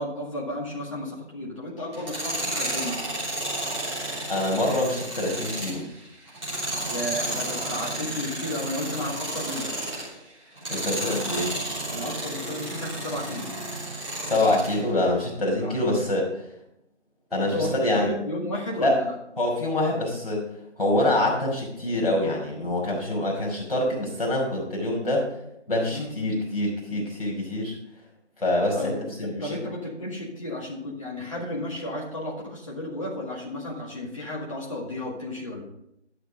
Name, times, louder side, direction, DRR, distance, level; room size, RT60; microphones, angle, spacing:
voice 1, 0.0-3.0 6.9-9.7 11.9-13.4 15.6-16.0 17.5-19.1 25.9-26.1 28.7-29.0 29.2-35.6, left 1 dB, 30° left, -4 dB, 1.8 m, -33 dB
Tools, 1.9-10.1 10.6-14.8, right 1 dB, 25° right, 3.6 m, -32 dB
voice 2, 4.3-5.8 10.7-11.6 14.2-16.4 17.3-18.1 18.8-19.0 19.4-20.5 20.8-25.3 25.7-27.7 28.4-29.6, left 1 dB, ahead, -24 dB, 2.3 m, -25 dB
12.0 x 6.5 x 5.0 m, 0.79 s
figure-of-eight pair, 170°, 35 cm